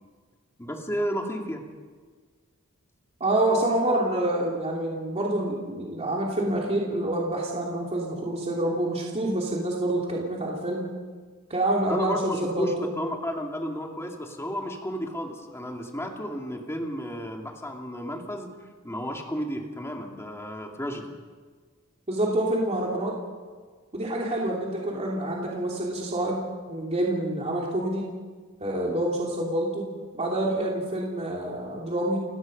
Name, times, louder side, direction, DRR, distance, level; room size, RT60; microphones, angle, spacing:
voice 1, 0.6-1.6 11.9-18.5 18.8-21.1, equal, 10° left, 1 dB, 2.5 m, -32 dB
voice 2, 3.2-10.9 11.5-12.9 22.1-23.1 23.9-28.1 28.6-29.9 30.1-32.2, right 1 dB, 30° right, -3 dB, 3.0 m, -27 dB
30.0 x 16.5 x 5.4 m, 1.5 s
head